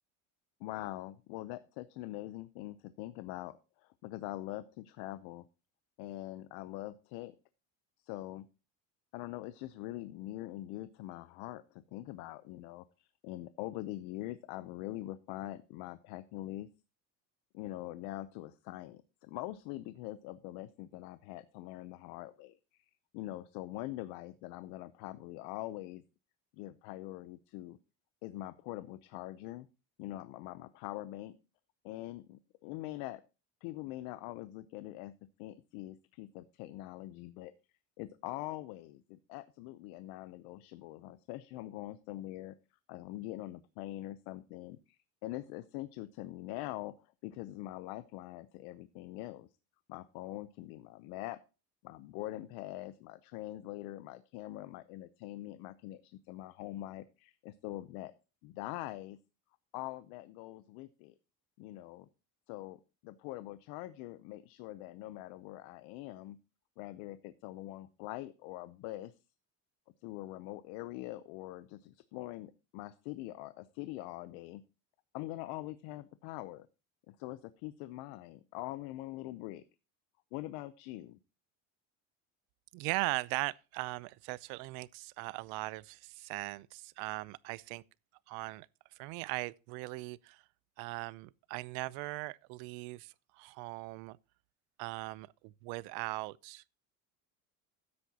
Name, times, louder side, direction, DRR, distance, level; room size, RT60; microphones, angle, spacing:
voice 1, 0.6-5.4 6.0-7.3 8.0-8.4 9.1-16.7 17.5-26.0 26.5-27.8 28.2-29.7 30.0-31.4 31.8-33.2 33.6-35.1 35.4-37.5 38.0-42.5 42.9-49.5 49.9-51.4 51.8-58.1 58.4-59.2 59.7-61.1 61.6-62.1 62.5-66.4 66.8-69.1 70.0-74.6 75.1-76.7 77.1-79.6 80.3-81.2, left 16 dB, 85° left, 0.7 m, -43 dB
voice 2, 82.7-87.8 88.3-88.7 88.9-90.4 90.8-94.2 94.8-96.6, right 22 dB, 75° right, 0.6 m, -39 dB
13.0 x 9.7 x 2.8 m
cardioid pair, 175°, 36 cm